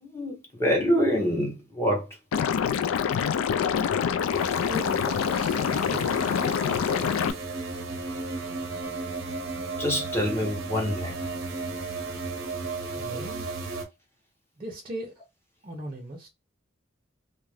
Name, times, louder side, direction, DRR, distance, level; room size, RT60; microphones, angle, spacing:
voice 1, 0.0-2.1 9.8-11.2, equal, 15° left, 0.9 m, -26 dB
Liquid, 2.3-7.3, left 7 dB, 85° left, 0.3 m, -26 dB
sound 1, 4.3-13.9, right 3 dB, 90° right, 0.7 m, -34 dB
voice 2, 4.5-6.4 13.0-13.5 14.6-15.1 15.6-16.3, right 1 dB, 25° right, 0.6 m, -38 dB
2.4 x 2.1 x 3.2 m
head